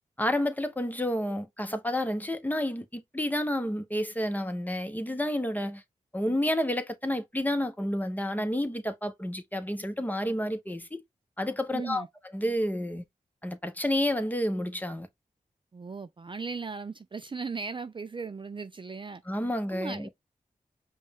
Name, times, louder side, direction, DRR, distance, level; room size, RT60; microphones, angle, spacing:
voice 1, 0.2-5.8 6.1-11.0 11.4-12.0 12.3-13.0 13.4-15.1 19.3-20.1, left 1 dB, 10° left, 0.9 m, -30 dB
voice 2, 11.7-12.1 15.7-19.2 19.7-20.1, right 4 dB, 35° right, 0.4 m, -37 dB
5.2 x 2.3 x 3.6 m
cardioid pair, 45°, 15 cm